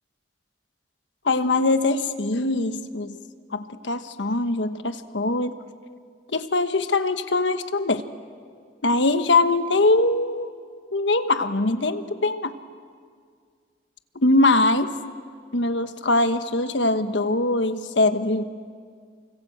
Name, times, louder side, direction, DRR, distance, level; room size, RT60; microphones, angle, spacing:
voice 1, 1.2-3.1 3.5-5.5 6.3-8.0 8.8-10.5 10.9-12.5 14.1-14.9 15.5-18.4, left 2 dB, 90° left, 9 dB, 1.3 m, -22 dB
29.5 x 24.5 x 8.0 m, 2.1 s
head